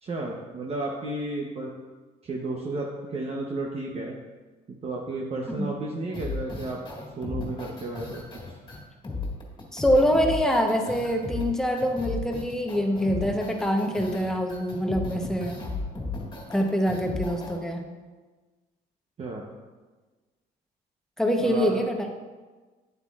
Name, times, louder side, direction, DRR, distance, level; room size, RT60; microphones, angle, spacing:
voice 1, 0.0-1.7 2.2-4.2 4.7-6.8 7.2-8.6 19.2-19.4 21.4-21.8, right 2 dB, 35° right, -1 dB, 0.9 m, -33 dB
sound 1, 6.1-17.6, left 3 dB, 25° left, 1.8 m, -35 dB
voice 2, 9.7-15.6 16.5-17.8 21.2-22.0, equal, 5° left, 2 dB, 0.9 m, -25 dB
9.0 x 8.0 x 2.4 m, 1.3 s
cardioid pair, 110°, 17 cm